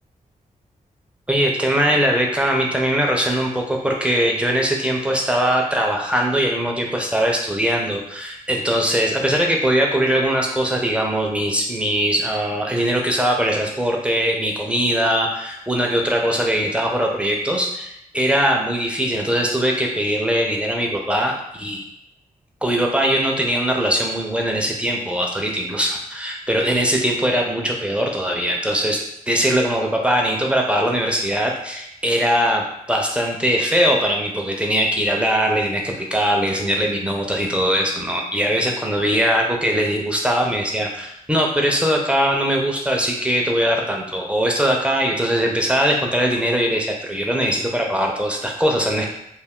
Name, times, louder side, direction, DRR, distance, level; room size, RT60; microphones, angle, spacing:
voice 1, 1.3-21.8 22.6-49.1, equal, 10° right, 0 dB, 0.4 m, -21 dB
2.3 x 2.2 x 3.5 m, 0.78 s
wide cardioid pair, 130°, 14 cm